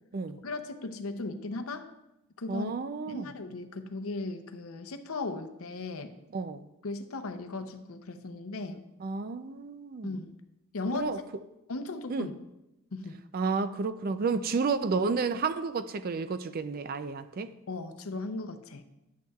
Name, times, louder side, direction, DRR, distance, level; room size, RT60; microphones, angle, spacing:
voice 1, 0.4-1.9 2.4-2.7 3.1-6.1 6.8-8.8 10.0-10.3 10.7-11.2 11.7-12.3 12.9-13.2 17.7-18.8, left 3 dB, 65° left, 0.7 m, -37 dB
voice 2, 2.5-3.3 6.3-6.7 9.0-10.1 10.9-11.2 12.1-12.3 13.3-17.5, right 4 dB, 40° right, 0.4 m, -31 dB
10.0 x 9.1 x 2.3 m
head